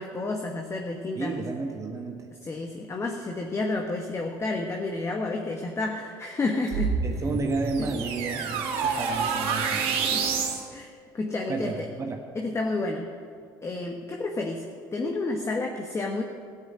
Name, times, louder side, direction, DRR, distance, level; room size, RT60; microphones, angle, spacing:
voice 1, 0.0-1.4 2.4-7.0 7.8-7.9 9.9-10.3 10.7-11.9 12.3-13.1 13.6-14.6 14.9-16.2, left 2 dB, 25° left, 2 dB, 1.3 m, -30 dB
voice 2, 1.2-2.3 7.0-10.0 11.5-12.2, right 3 dB, 30° right, 2 dB, 1.4 m, -32 dB
sound 1, 6.7-10.6, right 5 dB, 65° right, 2.0 m, -28 dB
13.5 x 7.7 x 9.2 m, 2.2 s
hypercardioid pair, 75°, 10 cm